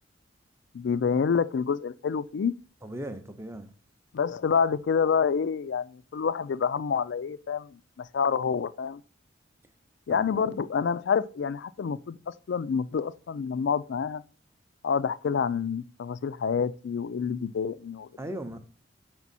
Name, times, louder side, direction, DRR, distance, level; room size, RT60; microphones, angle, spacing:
voice 1, 0.7-2.5 4.1-9.0 10.1-12.2 12.5-14.2 14.8-18.1, left 6 dB, 65° left, 0.3 m, -28 dB
voice 2, 2.8-3.7 10.1-10.2 18.2-18.6, right 1 dB, 15° right, 0.6 m, -37 dB
6.0 x 4.4 x 4.1 m
head